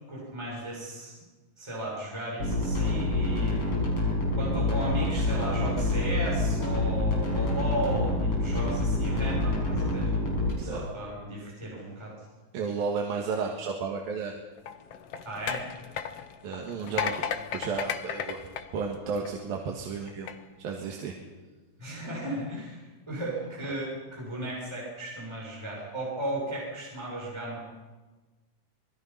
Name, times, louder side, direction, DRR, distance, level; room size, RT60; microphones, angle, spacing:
voice 1, 0.1-1.2 1.6-3.7 4.4-8.1 8.4-10.1 10.6-12.1 15.2-15.6 21.8-27.6, right 1 dB, 5° right, -5 dB, 6.6 m, -35 dB
sound 1, 2.4-10.5, left 2 dB, 35° left, 6.8 m, -27 dB
voice 2, 10.5-10.8 12.5-14.3 16.4-17.3 17.5-18.4 18.7-20.3 20.6-21.1, right 5 dB, 70° right, 1 dB, 3.4 m, -32 dB
sound 2, 14.6-19.5 20.1-20.3, left 8 dB, 75° left, 1.4 m, -34 dB
26.0 x 21.0 x 5.7 m, 1.3 s
omnidirectional pair, 4.3 m